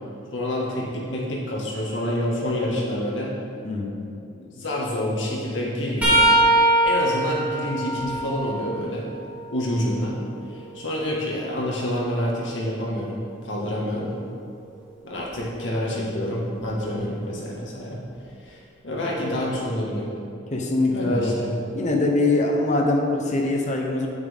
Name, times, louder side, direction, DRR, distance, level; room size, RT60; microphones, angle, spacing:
voice 1, 0.3-3.3 4.3-6.3 6.8-9.1 9.5-10.1 10.5-14.1 15.0-18.0 18.4-20.2 20.9-21.5, left 1 dB, 70° left, -4 dB, 1.7 m, -28 dB
voice 2, 3.6-4.0 20.5-21.3 21.7-24.1, left 2 dB, 40° left, 0 dB, 0.9 m, -22 dB
sound 1, 6.0-9.8 10.3-12.3 15.2-15.4 16.6-16.8 18.1-18.2, right 1 dB, 5° right, 2.1 m, -23 dB
8.7 x 8.4 x 3.6 m, 2.5 s
head